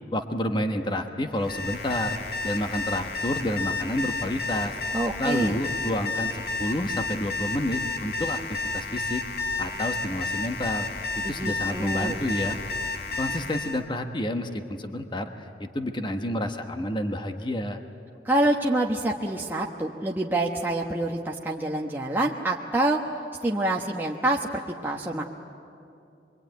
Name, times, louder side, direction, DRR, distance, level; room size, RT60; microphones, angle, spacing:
voice 1, 0.1-2.2 2.4-4.7 5.2-9.2 9.6-10.9 11.2-12.6 13.2-15.3 15.6-17.8, left 1 dB, 25° left, 6 dB, 1.2 m, -29 dB
Alarm, 1.3-13.8, left 3 dB, 65° left, 1.7 m, -31 dB
voice 2, 4.9-5.6 11.2-12.2 18.2-23.0 23.4-24.5 24.8-25.3, right 1 dB, 10° right, -2 dB, 1.1 m, -26 dB
26.5 x 22.5 x 9.3 m, 2.6 s
head